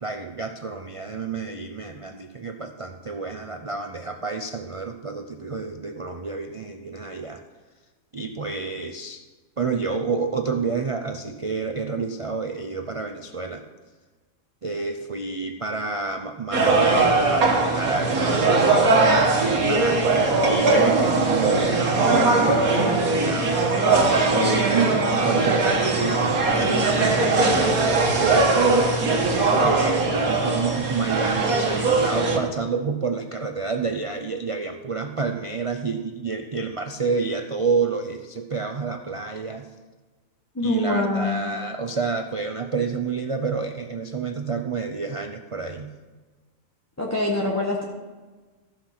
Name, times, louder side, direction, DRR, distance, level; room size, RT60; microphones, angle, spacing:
voice 1, 0.0-7.4 8.1-9.2 9.6-13.6 14.6-18.5 19.4-23.6 24.4-29.0 29.6-39.7 40.6-45.9, right 4 dB, 60° right, 5 dB, 0.3 m, -29 dB
sound 1, 16.5-32.4, right 3 dB, 80° right, 1.8 m, -20 dB
voice 2, 40.5-41.5 47.0-47.8, left 1 dB, 10° left, -3 dB, 1.2 m, -24 dB
14.5 x 5.9 x 5.8 m, 1.3 s
omnidirectional pair, 1.5 m